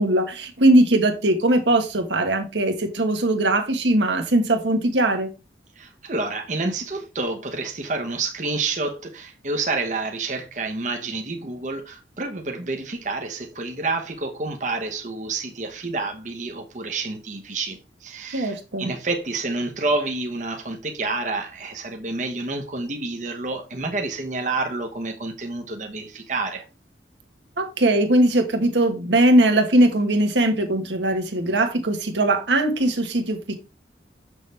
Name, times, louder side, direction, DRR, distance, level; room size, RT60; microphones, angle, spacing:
voice 1, 0.0-5.3 18.3-18.9 27.6-33.5, right 1 dB, 90° right, 1.4 m, -20 dB
voice 2, 5.8-26.6, right 3 dB, 45° right, 0.9 m, -29 dB
6.9 x 6.2 x 3.3 m
head